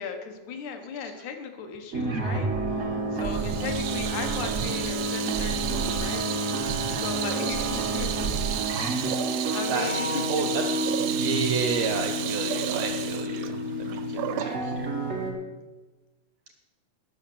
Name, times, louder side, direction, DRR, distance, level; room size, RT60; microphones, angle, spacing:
voice 1, 0.0-2.5 3.1-6.3 6.9-8.1 9.0-10.2, left 6 dB, 70° left, 5 dB, 2.3 m, -37 dB
sound 1, 1.9-15.3, right 2 dB, 45° right, 0.9 m, -29 dB
Water tap faucet / Sink (filling or washing), 3.2-14.6, right 11 dB, 90° right, 1.5 m, -33 dB
voice 2, 6.6-7.0 9.3-10.6 10.9-15.0, right 5 dB, 70° right, 3 dB, 1.6 m, -32 dB
11.0 x 6.4 x 6.7 m, 1.2 s
omnidirectional pair, 3.7 m